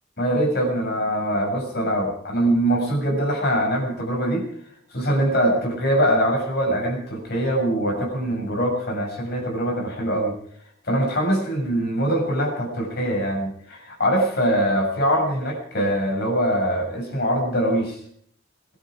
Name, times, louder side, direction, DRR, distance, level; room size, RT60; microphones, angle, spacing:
voice 1, 0.2-4.5 4.9-10.3 10.8-18.0, equal, 50° left, 1 dB, 6.7 m, -23 dB
23.0 x 12.0 x 4.9 m, 0.63 s
head